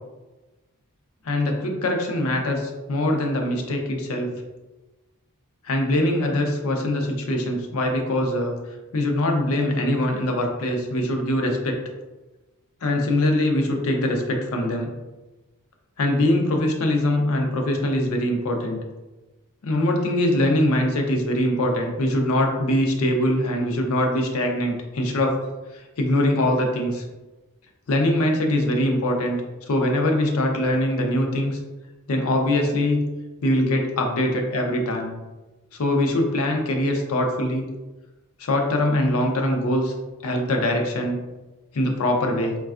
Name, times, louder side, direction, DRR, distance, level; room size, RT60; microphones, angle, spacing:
voice 1, 1.2-4.3 5.6-8.6 8.9-11.8 12.8-14.9 16.0-18.8 19.6-25.4 25.7-27.0 27.9-29.4 29.7-31.6 32.1-33.0 33.4-35.1 35.7-37.7 38.4-39.9 40.2-41.2 41.7-42.6, left 1 dB, 65° left, 2 dB, 0.5 m, -22 dB
4.1 x 2.2 x 2.4 m, 1.1 s
head